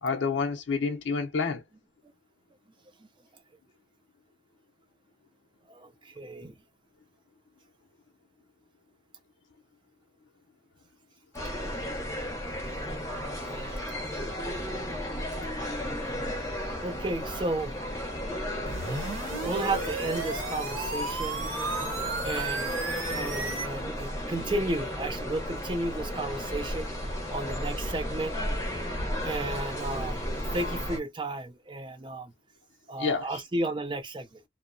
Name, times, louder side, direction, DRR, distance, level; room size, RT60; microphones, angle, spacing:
voice 1, 0.0-1.6 33.0-33.4, left 5 dB, 60° left, 0.5 m, -28 dB
voice 2, 5.7-6.6 12.7-12.8 13.5-13.7 16.8-17.8 19.4-21.4 22.2-22.8 23.1-26.9 27.3-28.4 29.2-30.2 30.5-32.3 32.9-34.4, right 2 dB, 25° right, 0.4 m, -33 dB
sound 1, 11.3-31.0, equal, 15° left, 0.6 m, -34 dB
sound 2, 18.7-23.7, right 3 dB, 85° right, 0.9 m, -34 dB
2.7 x 2.0 x 2.5 m
head